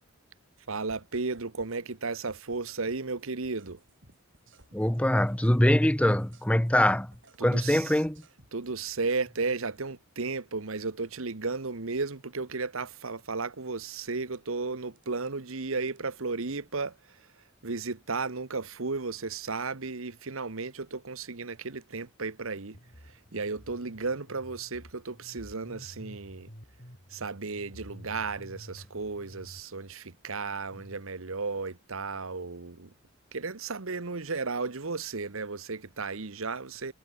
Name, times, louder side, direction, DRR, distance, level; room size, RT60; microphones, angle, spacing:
voice 1, 0.7-3.8 7.4-8.1 8.5-22.8 23.0-26.5 27.1-32.9 33.3-36.9, right 4 dB, 75° right, 1.2 m, -34 dB
sound 1, 0.9-1.8 2.0-5.6 5.8-9.2 14.0-14.4 15.0-15.5 15.9-16.5, right 2 dB, 60° right, 5.8 m, -59 dB
voice 2, 4.7-7.1 7.4-8.2, left 1 dB, 5° left, 0.7 m, -23 dB
sound 2, 22.7-29.6, equal, 40° left, 6.2 m, -50 dB
head